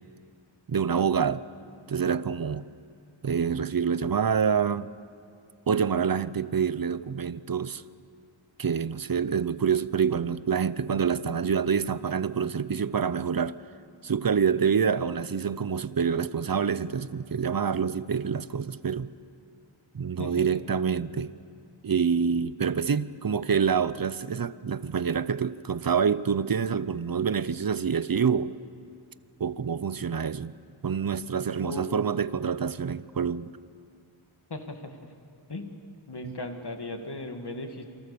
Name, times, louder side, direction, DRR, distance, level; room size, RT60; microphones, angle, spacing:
voice 1, 0.7-1.4 1.9-2.7 3.2-4.9 5.7-7.8 8.6-13.6 14.0-19.1 19.9-21.3 21.8-28.6 29.4-30.5 30.8-33.5, right 6 dB, 45° right, 0.7 m, -27 dB
voice 2, 34.5-35.1 35.5-35.7 36.1-37.8, left 2 dB, 55° left, 2.3 m, -37 dB
28.5 x 23.5 x 6.9 m
wide cardioid pair, 70°, 47 cm